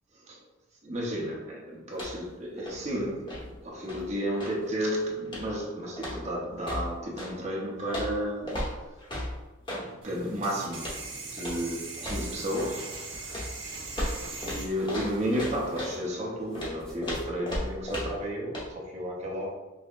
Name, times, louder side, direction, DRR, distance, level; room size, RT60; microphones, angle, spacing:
voice 1, 0.8-8.7 9.7-11.0 11.3-13.1 14.4-19.5, equal, 35° right, 0.7 m, -33 dB
sound 1, 1.9-2.3 2.6-4.7 5.2-5.6 6.0-7.4 7.9-9.9 10.7-11.1 11.4-11.7 12.0-12.8 13.3-16.0 16.5-18.3 18.5-18.7, left 1 dB, 25° left, 0.8 m, -36 dB
sound 2, 10.0-16.0, right 3 dB, 75° right, 1.1 m, -41 dB
sound 3, 12.8-16.1 16.4-17.3, equal, 5° left, 0.4 m, -52 dB
5.4 x 2.0 x 2.5 m
head